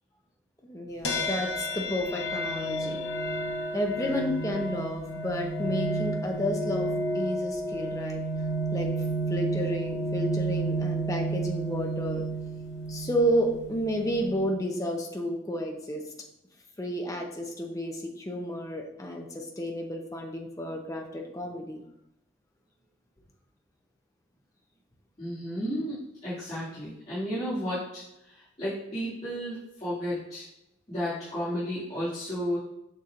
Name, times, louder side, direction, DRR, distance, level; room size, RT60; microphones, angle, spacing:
voice 1, 0.6-3.0 3.7-8.2 8.7-8.9 9.3-12.2 12.9-16.0 16.8-21.8, equal, 15° left, 2 dB, 0.7 m, -31 dB
sound 1, 1.0-14.6, right 2 dB, 65° left, 0.9 m, -31 dB
voice 2, 25.2-30.5 30.9-32.6, equal, 35° left, -14 dB, 2.2 m, -33 dB
6.8 x 6.0 x 2.5 m, 0.84 s
head